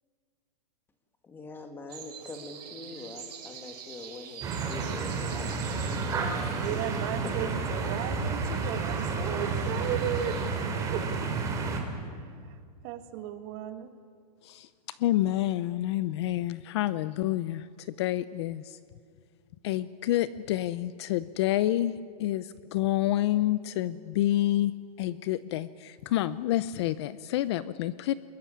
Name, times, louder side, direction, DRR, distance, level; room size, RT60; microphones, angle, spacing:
voice 1, 1.2-6.8 7.2-7.3 7.8-7.9, left 3 dB, 10° left, 6 dB, 1.8 m, -43 dB
sound 1, 1.9-10.5, right 8 dB, 70° right, 5.7 m, -47 dB
sound 2, 4.4-11.8, right 4 dB, 15° right, 3.1 m, -31 dB
voice 2, 6.5-10.4 10.9-11.3 12.2-12.6 12.8-14.0, right 11 dB, 35° right, 8 dB, 1.9 m, -35 dB
voice 3, 14.4-18.8 19.6-21.9 22.2-24.7 25.0-28.1, left 14 dB, 40° left, 16 dB, 0.6 m, -28 dB
24.0 x 22.0 x 9.9 m, 2.1 s
supercardioid pair, 165°, 21 cm